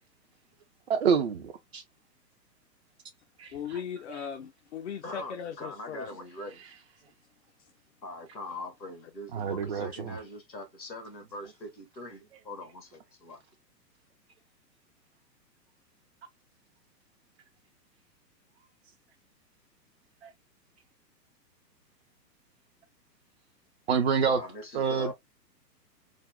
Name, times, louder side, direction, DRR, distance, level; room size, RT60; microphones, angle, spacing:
voice 1, 0.9-1.8 3.4-3.5 9.3-10.2 20.2-20.3 23.9-24.4 24.7-25.1, right 6 dB, 45° right, 0.4 m, -27 dB
voice 2, 3.5-6.1, left 7 dB, 45° left, 0.4 m, -38 dB
voice 3, 5.0-6.6 8.0-13.4 24.3-25.1, left 2 dB, 85° left, 1.4 m, -42 dB
3.5 x 2.0 x 3.5 m
figure-of-eight pair, 115°, 50 cm